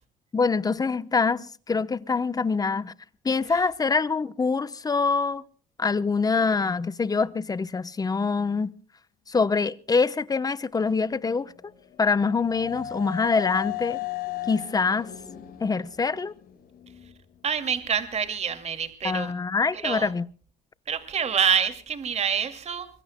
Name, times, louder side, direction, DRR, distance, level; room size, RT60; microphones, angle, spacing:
voice 1, 0.3-2.9 3.2-5.4 5.8-8.7 9.3-11.5 12.0-14.1 14.5-15.1 15.6-16.3 19.0-20.2, left 4 dB, 20° left, 0.9 m, -25 dB
sound 1, 11.2-17.1, left 14 dB, 60° left, 4.8 m, -36 dB
voice 2, 17.4-19.3 19.7-20.1 20.9-22.9, right 7 dB, 40° right, 2.4 m, -26 dB
25.5 x 22.5 x 2.2 m
cardioid pair, 110°, 17 cm